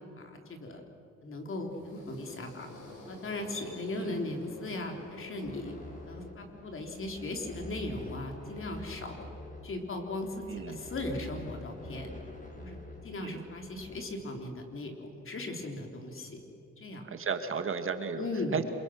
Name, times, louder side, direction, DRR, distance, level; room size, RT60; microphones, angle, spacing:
voice 1, 0.2-0.8 1.2-2.7 3.1-5.8 6.1-9.3 9.6-12.1 12.6-12.8 13.0-16.4 16.8-17.0 18.2-18.6, left 2 dB, 45° left, 3 dB, 3.6 m, -38 dB
sound 1, 1.5-6.7, left 1 dB, 90° left, 5.2 m, -50 dB
sound 2, 5.4-14.0, left 2 dB, 25° left, 5.4 m, -46 dB
voice 2, 10.5-10.8 13.2-13.4 17.1-18.3 18.5-18.7, right 5 dB, 45° right, 7 dB, 1.7 m, -34 dB
26.5 x 23.0 x 6.4 m, 2.8 s
cardioid pair, 90°, 30 cm